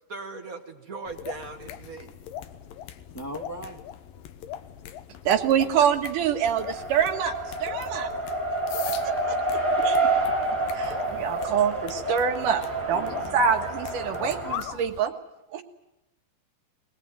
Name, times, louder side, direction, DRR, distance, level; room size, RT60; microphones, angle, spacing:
voice 1, 0.1-2.1, right 3 dB, 45° right, 4 dB, 1.1 m, -38 dB
sound 1, 1.1-15.0, left 10 dB, 80° left, 2.8 m, -41 dB
voice 2, 3.1-3.8 5.6-5.7 9.7-10.1 12.9-13.4, equal, 5° left, 2 dB, 1.7 m, -40 dB
voice 3, 5.3-7.3 7.6-8.1 9.0-10.1 10.7-15.1 15.5-15.6, right 8 dB, 70° right, 4 dB, 3.0 m, -26 dB
Race car auto racing, 6.4-14.6, right 2 dB, 15° right, 3.5 m, -28 dB
21.0 x 20.0 x 9.3 m, 0.91 s
omnidirectional pair, 4.0 m